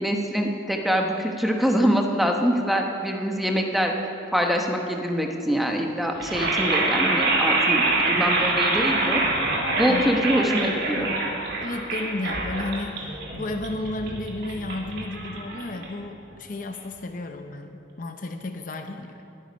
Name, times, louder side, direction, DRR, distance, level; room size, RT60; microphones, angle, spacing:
voice 1, 0.0-3.9 4.3-9.2 9.8-11.1, equal, ahead, 2 dB, 1.0 m, -24 dB
sound 1, 6.2-16.2, right 2 dB, 50° right, 2.2 m, -25 dB
voice 2, 11.6-13.1 13.4-19.2, left 2 dB, 40° left, 6 dB, 0.7 m, -33 dB
20.0 x 9.7 x 5.3 m, 2.7 s
head